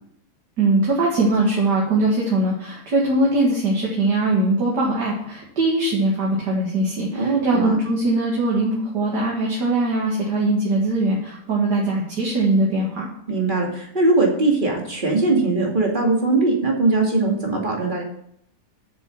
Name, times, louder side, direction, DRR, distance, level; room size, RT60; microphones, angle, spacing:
voice 1, 0.6-13.1, right 2 dB, 75° right, -4 dB, 2.5 m, -21 dB
voice 2, 7.1-7.8 13.3-18.0, right 3 dB, 30° right, -1 dB, 2.6 m, -20 dB
8.1 x 6.8 x 7.2 m, 0.71 s
omnidirectional pair, 1.8 m